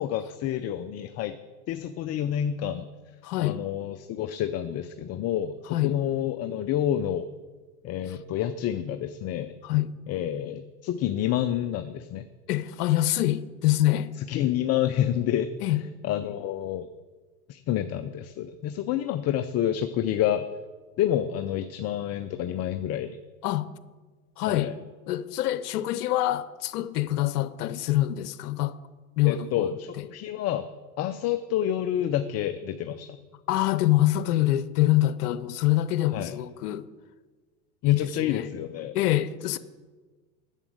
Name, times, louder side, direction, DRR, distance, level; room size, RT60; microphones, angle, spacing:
voice 1, 0.0-1.4 1.7-2.9 3.4-7.3 7.8-9.6 10.1-12.2 14.3-15.5 16.0-16.9 17.5-20.4 21.0-23.2 24.5-24.7 29.2-30.7 31.0-33.2 36.1-36.4 37.8-39.0, left 11 dB, 35° left, 0.5 m, -28 dB
voice 2, 3.2-3.6 5.7-6.0 8.1-8.2 9.6-9.9 12.5-14.1 15.6-15.8 23.4-23.7 24.4-24.7 25.1-28.8 29.2-30.1 33.5-36.9 37.8-38.5 38.9-39.6, left 14 dB, 80° left, 0.8 m, -25 dB
9.0 x 7.1 x 7.8 m
hypercardioid pair, 105°, 46 cm